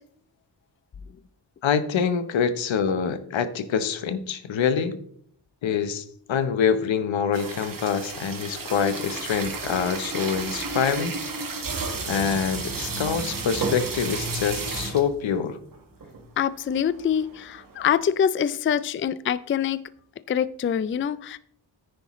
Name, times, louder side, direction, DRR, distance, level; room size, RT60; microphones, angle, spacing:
voice 1, 1.6-5.0 5.6-11.2 12.1-15.6, left 7 dB, 85° left, 11 dB, 0.9 m, -25 dB
sound 1, 7.3-15.2 15.7-15.8 16.0-16.3 16.7-18.0, right 3 dB, 45° right, 1.6 m, -32 dB
voice 2, 16.4-19.8 20.3-21.4, left 8 dB, 30° left, 16 dB, 0.3 m, -25 dB
9.8 x 9.7 x 3.1 m, 0.64 s
wide cardioid pair, 125°, 45 cm